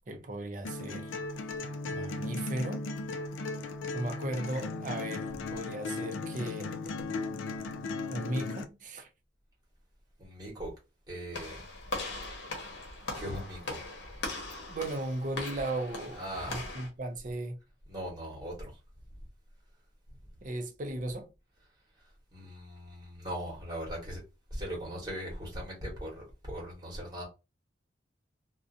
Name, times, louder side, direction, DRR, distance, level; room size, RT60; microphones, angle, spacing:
voice 1, 0.1-1.1 1.9-2.8 3.9-6.7 8.1-9.1 14.7-16.2 16.5-17.6 20.4-21.3, right 1 dB, 40° right, 0.5 m, -36 dB
sound 1, 0.6-8.6, left 3 dB, 90° left, 0.4 m, -36 dB
voice 2, 10.2-10.7 11.1-11.7 13.0-13.8 16.2-16.7 17.9-18.8 19.1-19.2 20.1-20.2 21.9-24.2 24.5-27.2, equal, 20° right, 1.0 m, -40 dB
Walk footsteps / Slam, 11.3-16.9, left 2 dB, 65° left, 0.9 m, -40 dB
2.5 x 2.1 x 2.5 m
head